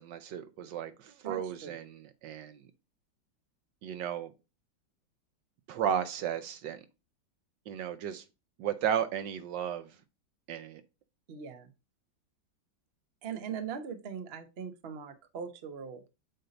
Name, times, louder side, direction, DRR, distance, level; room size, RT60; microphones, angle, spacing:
voice 1, 0.0-2.6 3.8-4.3 5.7-6.8 7.7-8.2 8.6-9.9 10.5-10.8, right 9 dB, 75° right, 1.3 m, -34 dB
voice 2, 1.2-1.8 11.3-11.7 13.2-16.0, right 7 dB, 55° right, 0.7 m, -40 dB
7.8 x 2.7 x 5.1 m
omnidirectional pair, 2.1 m